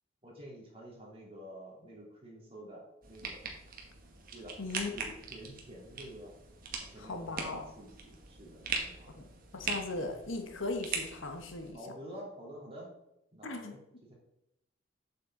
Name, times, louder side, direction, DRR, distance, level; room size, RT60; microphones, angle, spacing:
voice 1, 0.2-3.4 4.3-6.4 6.8-9.1 9.9-10.1 11.7-12.9 13.3-13.8 14.1-14.2, equal, 30° right, -4 dB, 3.0 m, -49 dB
sound 1, 3.0-11.7, right 4 dB, 45° right, 1.5 m, -41 dB
voice 2, 4.6-4.9 7.0-7.6 9.1-11.8 13.4-13.7, left 2 dB, 80° left, 5 dB, 1.2 m, -38 dB
7.7 x 6.8 x 3.8 m, 0.85 s
head